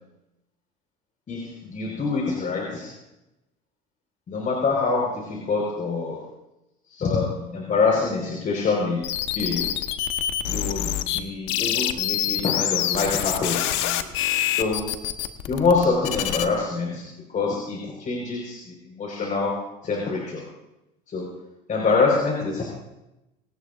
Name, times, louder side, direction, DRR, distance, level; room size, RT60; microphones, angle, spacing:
voice 1, 1.3-2.9 4.3-6.2 6.9-9.0 9.3-9.7 10.5-14.1 14.6-14.9 15.5-17.1 17.3-20.4 21.1-21.3 21.7-22.7, left 4 dB, 40° left, -1 dB, 4.6 m, -25 dB
sound 1, 9.0-11.2 11.5-16.5, left 12 dB, 75° left, 1.2 m, -26 dB
26.0 x 18.0 x 2.5 m, 0.93 s
supercardioid pair, 85°, 20 cm